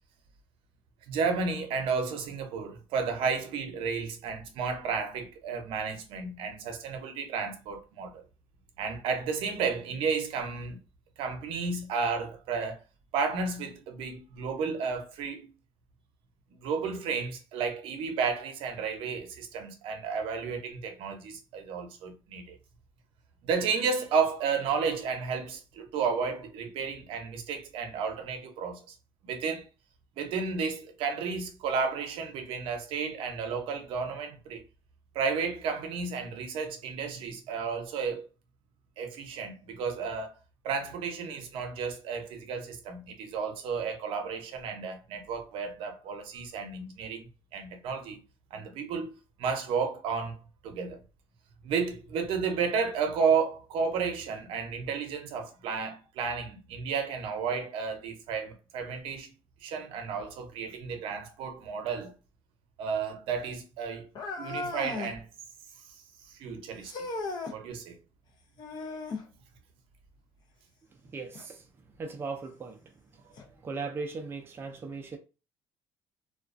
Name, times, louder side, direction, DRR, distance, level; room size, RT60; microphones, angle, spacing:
voice 1, 1.1-8.2 8.8-10.8 11.2-12.8 13.1-15.5 16.6-22.6 23.4-28.9 29.2-29.7 30.2-34.6 35.1-38.3 39.0-40.3 40.6-48.2 48.5-49.1 49.4-51.0 51.6-59.3 59.6-62.1 62.8-64.1 64.4-65.3 66.4-66.9 67.5-67.9, right 5 dB, 75° right, 0.6 m, -32 dB
sound 1, 64.1-65.2 66.8-67.6 68.6-69.3 71.3-71.4 72.3-72.4 73.4-73.5, left 3 dB, 50° left, 0.6 m, -36 dB
voice 2, 71.1-71.7 72.0-73.2 73.6-75.2, right 4 dB, 25° right, 0.4 m, -38 dB
2.3 x 2.2 x 2.4 m
cardioid pair, 120°, 9 cm